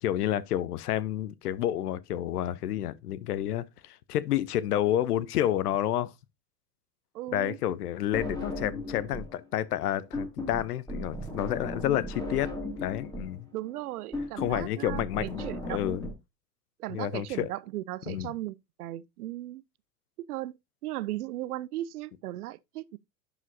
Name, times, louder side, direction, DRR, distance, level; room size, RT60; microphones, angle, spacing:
voice 1, 0.0-6.1 7.3-12.5 12.8-13.5 14.4-16.1 16.9-17.5 18.1-18.3, left 12 dB, 65° left, 0.7 m, -30 dB
voice 2, 7.1-7.6 13.5-15.8 16.8-19.6 20.2-20.6 20.8-23.0, right 15 dB, 65° right, 0.6 m, -37 dB
sound 1, 8.1-9.4 9.6-16.1, left 1 dB, 10° left, 2.1 m, -36 dB
11.0 x 5.0 x 2.6 m
figure-of-eight pair, 90°, 49 cm